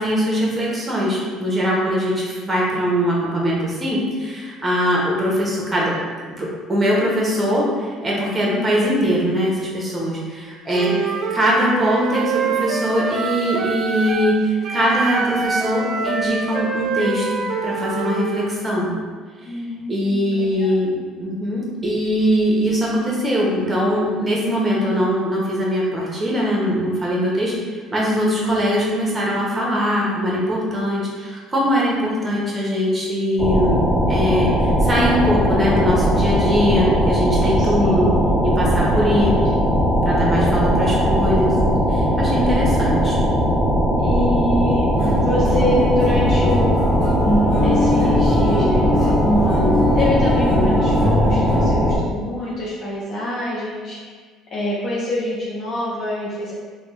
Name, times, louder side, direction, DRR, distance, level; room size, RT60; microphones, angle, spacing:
voice 1, 0.0-10.9 11.3-18.9 19.9-27.5 27.9-33.8 34.1-38.1 38.4-39.3 40.0-43.2, equal, 20° right, -4 dB, 0.9 m, -21 dB
voice 2, 8.5-9.0 10.9-11.2 19.5-20.8 37.6-38.3 38.8-39.4 44.0-44.9 45.1-47.1 47.6-49.6 49.9-54.0 54.5-56.5, left 1 dB, 50° left, -7 dB, 0.6 m, -26 dB
Wind instrument woodwind instrument, 10.7-14.4 14.6-18.5, right 4 dB, 50° right, 0.3 m, -25 dB
sound 1, 33.4-52.0, equal, 5° left, 0.5 m, -19 dB
sound 2, 45.0-51.7, left 1 dB, 70° left, 1.1 m, -22 dB
3.4 x 2.2 x 3.1 m, 1.6 s
cardioid pair, 110°, 0 cm